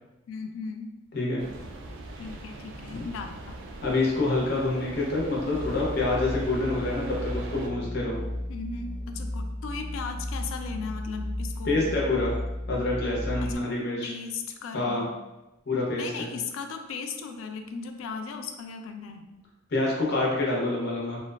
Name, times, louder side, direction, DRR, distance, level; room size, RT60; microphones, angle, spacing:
voice 1, 0.3-0.9 2.2-3.6 8.5-12.0 13.4-13.6 14.0-15.1 16.0-19.3, left 5 dB, 90° left, 5 dB, 0.3 m, -37 dB
sound 1, 1.4-7.7, right 2 dB, 75° right, 0.3 m, -41 dB
voice 2, 3.8-8.2 11.7-12.3 12.7-14.1 14.7-15.1 15.7-16.3 19.7-21.2, left 2 dB, 55° left, -3 dB, 0.6 m, -27 dB
sound 2, 5.5-13.6, left 1 dB, 50° right, 1.2 m, -34 dB
2.5 x 2.2 x 2.2 m, 1.0 s
head